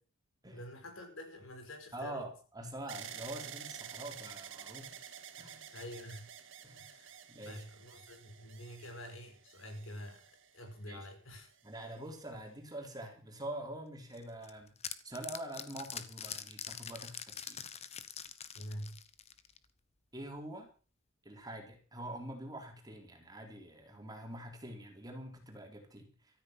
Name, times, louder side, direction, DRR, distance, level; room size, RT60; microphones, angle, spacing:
voice 1, 0.5-2.3 5.7-6.3 6.8-7.1 7.4-10.3 10.5-11.5 18.6-19.0, equal, 75° left, 5 dB, 5.4 m, -47 dB
voice 2, 1.9-2.3 2.5-5.0 5.4-5.7 6.6-6.9 7.3-7.6 10.9-11.1 11.6-14.7 15.0-17.6 20.1-20.7 21.2-26.4, right 1 dB, 20° right, 3 dB, 3.8 m, -45 dB
sound 1, 2.9-10.9 11.6-12.3, right 8 dB, 65° right, 1.8 m, -50 dB
sound 2, 14.1-19.7, left 8 dB, 30° left, 1.1 m, -44 dB
13.5 x 13.5 x 6.0 m, 0.38 s
head